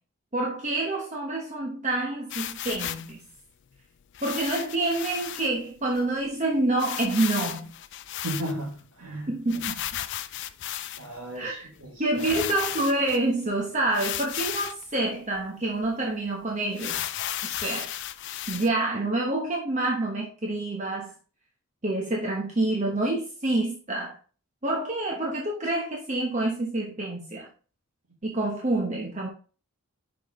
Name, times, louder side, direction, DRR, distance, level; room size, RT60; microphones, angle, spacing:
voice 1, 0.3-3.2 4.2-7.7 9.3-9.8 11.4-11.7 12.0-17.2 17.4-17.9 18.5-21.1 21.8-24.2 24.6-27.5 28.2-29.3, right 2 dB, 35° right, 1.0 m, -27 dB
sound 1, 2.3-3.1 4.1-5.5 5.9-6.0 6.2-6.3 6.8-8.8 9.5-11.2 11.8-11.9 12.2-13.2 13.9-14.8 15.3-15.4 15.8-15.9 16.7-18.7, left 12 dB, 55° left, 0.4 m, -34 dB
voice 2, 8.2-9.4 11.0-12.5, right 1 dB, 80° right, 1.9 m, -35 dB
6.1 x 5.0 x 3.6 m
head